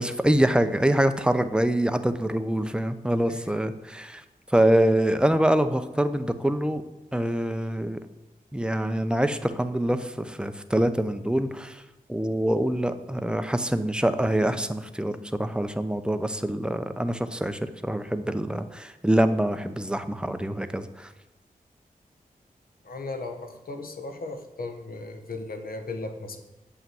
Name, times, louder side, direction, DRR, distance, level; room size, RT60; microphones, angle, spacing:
voice 1, 0.0-4.2 4.5-6.8 7.1-8.0 8.5-11.8 12.1-21.1, right 1 dB, 5° right, 9 dB, 0.7 m, -25 dB
voice 2, 22.8-26.4, left 3 dB, 75° left, 6 dB, 1.1 m, -36 dB
8.4 x 5.7 x 7.7 m, 1.1 s
wide cardioid pair, 70°, 15 cm